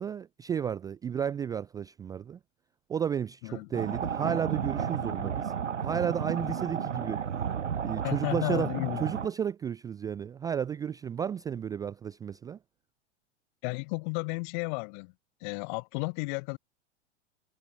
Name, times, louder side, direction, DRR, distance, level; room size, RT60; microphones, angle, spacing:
voice 1, 0.0-2.4 2.9-5.5 5.8-7.2 7.8-12.6, right 8 dB, 10° right, 0.4 m, -33 dB
sound 1, 3.7-9.3, right 7 dB, 80° right, 0.8 m, -33 dB
voice 2, 8.0-9.0 13.6-15.1 15.4-16.6, left 32 dB, 40° left, 1.5 m, -33 dB
figure-of-eight pair, 95°, 36 cm